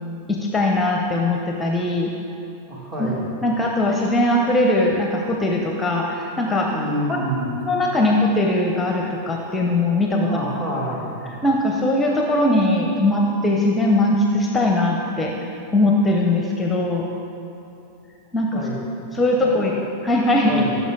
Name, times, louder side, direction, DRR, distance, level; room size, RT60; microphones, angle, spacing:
voice 1, 0.3-2.1 3.0-3.1 3.4-6.7 7.1-7.2 7.7-10.4 11.4-15.3 15.7-17.1 18.3-18.6 19.1-19.7 20.0-20.5, left 1 dB, 10° left, 1 dB, 0.9 m, -20 dB
voice 2, 2.7-3.3 6.7-7.5 10.2-11.2 18.5-18.8 19.4-19.7 20.4-20.8, right 1 dB, 35° right, -4 dB, 2.5 m, -28 dB
16.0 x 6.6 x 4.0 m, 2.8 s
figure-of-eight pair, 90°, 0 cm